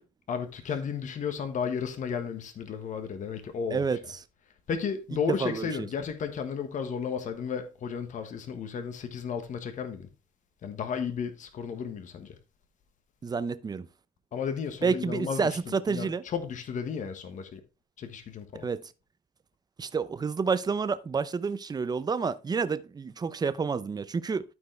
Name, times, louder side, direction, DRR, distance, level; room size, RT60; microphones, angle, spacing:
voice 1, 0.3-4.0 4.7-10.1 10.6-12.4 14.3-17.6 18.0-18.7, left 6 dB, 50° left, 1.3 m, -33 dB
voice 2, 3.7-4.2 5.4-5.7 13.2-13.9 14.8-16.2 18.6-18.8 19.8-24.4, right 5 dB, 25° right, 0.6 m, -29 dB
12.5 x 4.7 x 3.2 m
cardioid pair, 110°, 17 cm